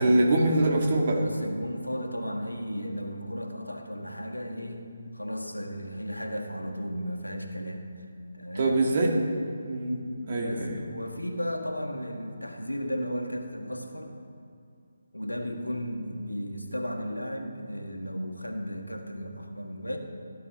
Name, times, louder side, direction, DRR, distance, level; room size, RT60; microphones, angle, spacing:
voice 1, 0.0-1.2 8.6-9.1 9.6-10.7, right 2 dB, 40° right, 0 dB, 2.0 m, -24 dB
voice 2, 1.1-8.8 10.3-14.1 15.1-20.0, equal, 85° left, 3 dB, 1.7 m, -35 dB
17.0 x 11.5 x 3.7 m, 2.5 s
figure-of-eight pair, 145°, 0 cm